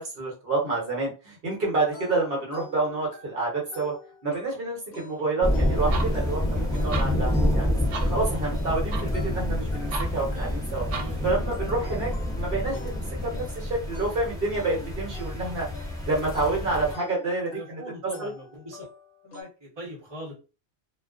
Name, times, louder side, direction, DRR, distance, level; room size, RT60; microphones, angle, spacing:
voice 1, 0.0-3.9 4.2-7.7 8.0-10.9 11.2-15.7 16.1-17.8 18.2-18.3, right 3 dB, 55° right, -3 dB, 1.0 m, -28 dB
sound 1, 1.9-19.4, left 3 dB, 60° left, 1.0 m, -48 dB
voice 2, 5.2-5.6 10.9-11.6 16.1-16.6 17.5-18.9 19.2-20.3, equal, 25° right, -4 dB, 0.8 m, -42 dB
sound 2, 5.4-16.9, left 1 dB, 5° left, 0.4 m, -28 dB
sound 3, 5.8-11.3, right 5 dB, 90° right, 0.9 m, -39 dB
2.3 x 2.2 x 2.3 m, 0.32 s
omnidirectional pair, 1.2 m